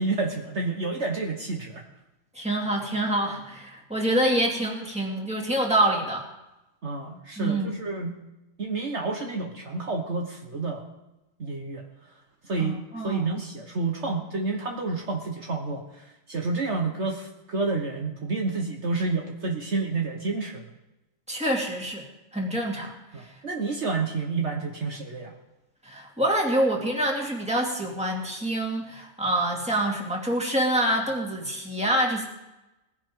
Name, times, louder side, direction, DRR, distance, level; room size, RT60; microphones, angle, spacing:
voice 1, 0.0-1.8 6.8-8.1 8.6-10.8 11.4-11.8 12.5-12.8 13.0-20.6 23.1-25.3, right 3 dB, 55° right, 1 dB, 1.7 m, -29 dB
voice 2, 2.3-6.2 7.4-7.7 12.6-13.3 21.3-22.0 22.3-23.3 25.8-32.3, right 1 dB, 5° right, -1 dB, 2.6 m, -26 dB
19.5 x 16.0 x 3.9 m, 0.98 s
omnidirectional pair, 1.4 m